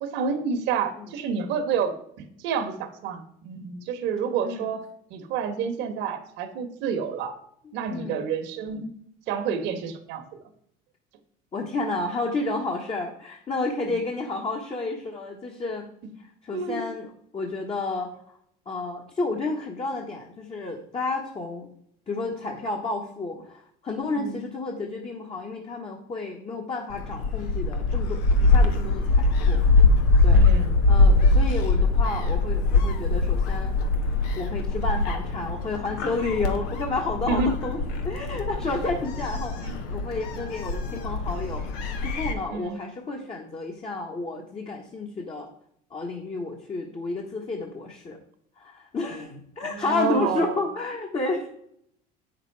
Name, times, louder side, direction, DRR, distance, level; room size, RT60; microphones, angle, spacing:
voice 1, 0.0-7.3 7.7-8.9 9.3-10.2 13.9-14.0 16.5-16.8 24.2-24.4 30.3-30.7 37.3-37.5 39.7-39.8 42.5-42.8 49.6-50.6, right 6 dB, 70° right, 7 dB, 1.4 m, -29 dB
voice 2, 11.5-15.9 16.2-17.1 17.3-18.4 18.7-21.7 22.1-29.6 30.2-30.4 30.9-33.7 34.3-45.5 45.9-48.2 48.6-51.5, left 3 dB, 30° left, 1 dB, 1.4 m, -31 dB
Gull seagull, 26.9-42.3, left 3 dB, 90° left, 1.3 m, -22 dB
8.4 x 6.6 x 4.7 m, 0.70 s
supercardioid pair, 110°, 19 cm